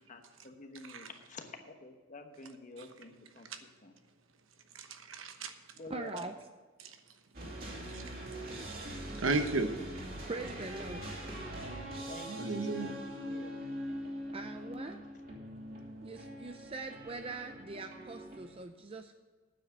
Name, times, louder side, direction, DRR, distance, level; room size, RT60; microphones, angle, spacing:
voice 1, 0.1-3.9 5.7-6.3 12.1-13.0 13.2-13.5, left 2 dB, 40° left, 6 dB, 1.1 m, -49 dB
voice 2, 4.7-5.5 6.8-7.0 7.9-8.0 9.1-9.7 12.3-13.0, right 2 dB, 80° right, 7 dB, 1.1 m, -34 dB
voice 3, 5.9-6.3 10.3-11.1 14.3-15.0 16.0-19.1, right 3 dB, 30° right, 7 dB, 0.5 m, -42 dB
sound 1, 7.3-18.6, equal, 50° right, 2.8 m, -43 dB
9.2 x 7.6 x 7.9 m, 1.3 s
head